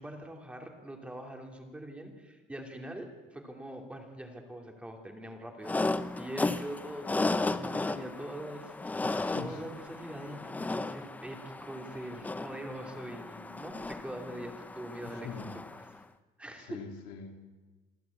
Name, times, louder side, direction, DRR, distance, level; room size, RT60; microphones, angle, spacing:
voice 1, 0.0-5.7 6.2-7.1 7.4-9.1 9.4-15.6 15.9-16.0 16.4-16.8, right 1 dB, 5° right, 2 dB, 2.9 m, -43 dB
sound 1, 5.6-15.9, left 2 dB, 10° left, 0.7 m, -35 dB
voice 2, 9.0-9.6 15.1-15.5 16.7-17.5, left 6 dB, 85° left, 3 dB, 3.3 m, -43 dB
26.5 x 14.0 x 8.6 m, 1.2 s
cardioid pair, 155°, 17 cm